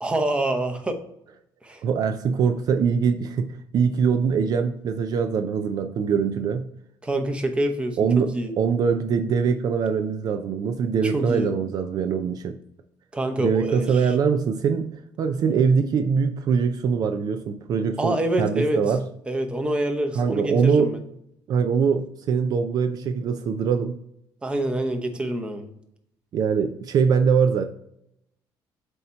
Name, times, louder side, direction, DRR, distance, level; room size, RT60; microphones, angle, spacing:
voice 1, 0.0-1.0 1.6-1.8 7.0-8.5 11.0-11.5 13.1-14.1 18.0-18.8 19.3-21.0 24.4-25.7, right 1 dB, 10° right, 5 dB, 0.8 m, -26 dB
voice 2, 1.8-6.6 8.0-12.6 13.4-19.0 20.2-20.9 21.5-24.0 26.3-27.7, right 6 dB, 50° right, 6 dB, 0.4 m, -23 dB
8.0 x 2.9 x 4.3 m, 0.77 s
cardioid pair, 135°, 8 cm